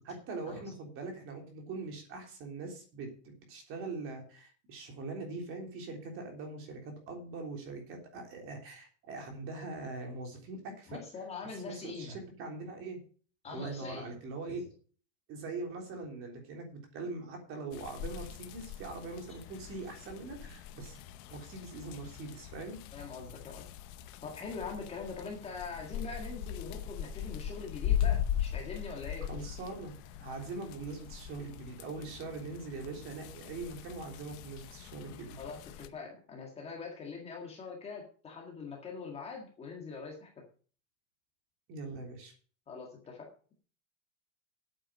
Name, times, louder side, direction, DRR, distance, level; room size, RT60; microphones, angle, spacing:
voice 1, 0.1-11.0 11.7-13.0 13.5-14.6 15.3-21.0 21.3-22.8 29.3-35.4 41.7-42.3, right 3 dB, 30° right, 3 dB, 3.5 m, -42 dB
voice 2, 10.9-12.2 13.4-14.2 14.5-14.6 22.9-23.7 24.2-29.3 35.3-40.4 42.7-43.3, left 4 dB, 15° left, 0 dB, 1.9 m, -43 dB
sound 1, 17.7-35.9, left 10 dB, 35° left, 0.8 m, -39 dB
8.8 x 8.8 x 6.2 m, 0.41 s
supercardioid pair, 175°, 41 cm